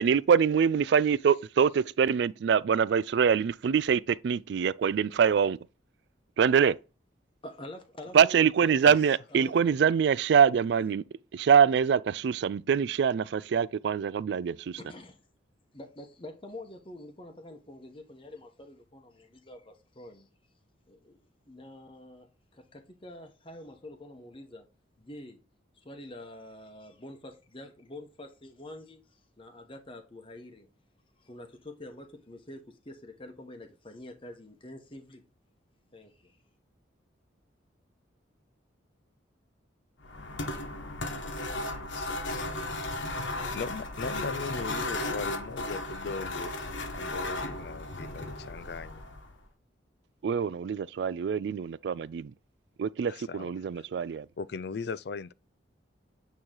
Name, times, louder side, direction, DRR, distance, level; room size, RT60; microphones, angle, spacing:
voice 1, 0.0-5.6 6.4-6.8 8.1-11.0 11.3-14.8 50.2-52.3 52.8-54.3, right 7 dB, 60° right, 0.3 m, -24 dB
voice 2, 7.4-9.8 14.8-15.2 15.7-20.3 20.9-21.2 21.5-24.7 25.0-25.4 25.7-30.7 31.2-35.2 35.9-36.4, left 1 dB, 30° left, 1.0 m, -47 dB
sound 1, 40.0-49.4, left 2 dB, 80° left, 1.3 m, -35 dB
voice 3, 41.9-42.6 43.5-46.5 46.9-49.0 53.1-53.9 54.4-55.3, left 5 dB, 55° left, 0.4 m, -38 dB
8.7 x 3.1 x 3.8 m
head